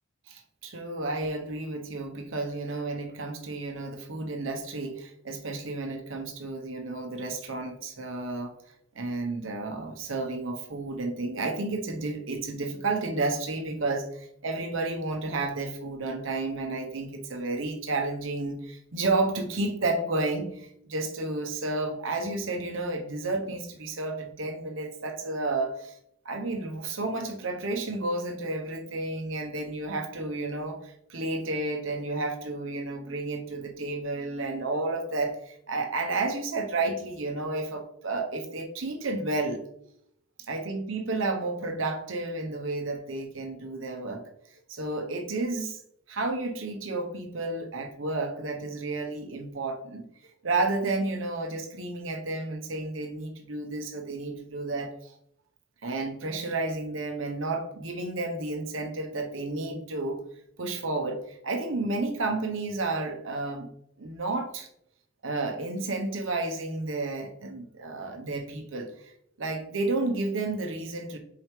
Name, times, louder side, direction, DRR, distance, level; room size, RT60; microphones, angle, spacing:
voice 1, 0.3-8.5 8.9-25.9 26.2-39.6 40.5-44.2 44.7-45.8 46.1-50.1 50.4-55.1 55.8-60.2 60.6-61.2 61.4-63.7 64.0-64.7 65.2-69.1 69.4-71.2, right 2 dB, 90° right, 4 dB, 1.0 m, -31 dB
6.6 x 4.8 x 3.2 m, 0.72 s
head